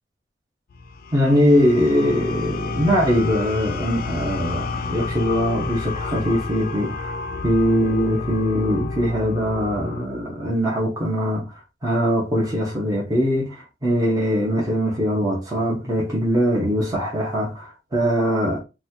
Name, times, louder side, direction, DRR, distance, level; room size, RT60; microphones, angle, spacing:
sound 1, 0.7-10.1, left 4 dB, 55° left, 0.3 m, -30 dB
voice 1, 1.1-7.1 7.4-18.6, equal, 20° right, 0.9 m, -22 dB
4.0 x 2.3 x 2.7 m
head